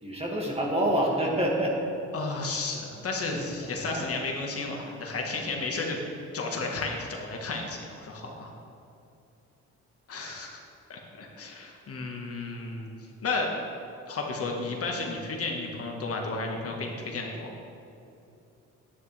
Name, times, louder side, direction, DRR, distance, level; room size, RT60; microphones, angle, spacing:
voice 1, 0.0-1.8 3.3-3.4 3.8-4.0 5.4-5.6, right 1 dB, 20° right, -2 dB, 2.0 m, -27 dB
voice 2, 2.1-6.0 6.3-8.5 10.1-10.6 10.9-12.9 13.2-13.5 14.1-17.5, left 3 dB, 50° left, 0 dB, 1.5 m, -33 dB
10.5 x 10.0 x 3.3 m, 2.7 s
cardioid pair, 90°, 30 cm